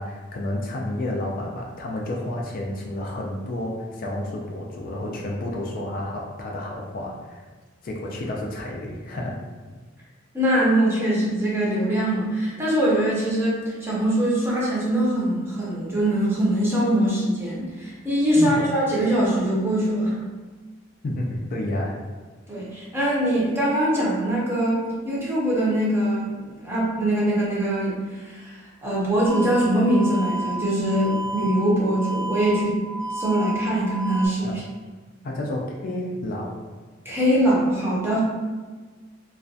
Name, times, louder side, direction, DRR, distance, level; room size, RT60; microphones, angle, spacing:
voice 1, 0.0-7.4 7.8-9.4 18.4-18.6 21.0-21.9 34.4-34.6 35.2-36.5, left 1 dB, 45° left, -1 dB, 0.3 m, -30 dB
voice 2, 10.3-20.1 22.5-32.8 33.1-34.6 37.0-38.2, right 1 dB, 15° right, -6 dB, 0.6 m, -22 dB
sound 1, 29.3-34.3, right 2 dB, 70° right, 0.3 m, -32 dB
2.3 x 2.1 x 2.5 m, 1.4 s
head